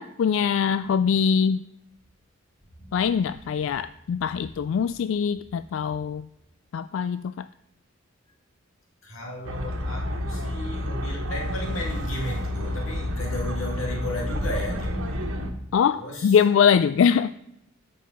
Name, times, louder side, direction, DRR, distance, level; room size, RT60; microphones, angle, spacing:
voice 1, 0.0-1.6 2.9-6.2 6.7-7.5 15.7-17.3, left 7 dB, 65° left, 13 dB, 0.3 m, -22 dB
voice 2, 2.8-3.1 3.6-3.7 4.3-4.4 9.0-15.2 16.0-16.4, left 1 dB, 80° left, -2 dB, 2.6 m, -35 dB
sound 1, 9.4-15.5, left 1 dB, 75° right, 1.4 m, -29 dB
12.0 x 5.6 x 5.7 m, 0.82 s
head